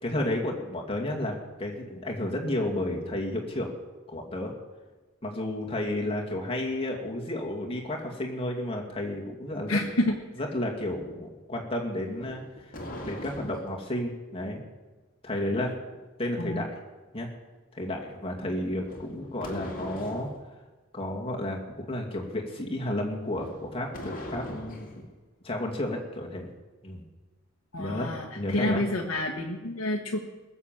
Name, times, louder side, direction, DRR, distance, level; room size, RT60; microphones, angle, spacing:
voice 1, 0.0-3.7 4.1-4.5 5.2-9.9 10.4-14.6 15.2-15.7 16.2-16.8 17.1-17.3 17.7-20.3 20.9-25.1 25.4-26.5 26.8-27.0 27.8-28.9, left 1 dB, 30° left, 0 dB, 2.3 m, -32 dB
voice 2, 9.7-10.1 16.4-16.6 27.7-30.2, left 1 dB, 85° left, -1 dB, 1.3 m, -28 dB
sound 1, 12.1-13.9 18.8-20.4 23.3-25.0, left 1 dB, 45° left, 2.3 m, -40 dB
20.5 x 7.2 x 7.6 m, 1.2 s
head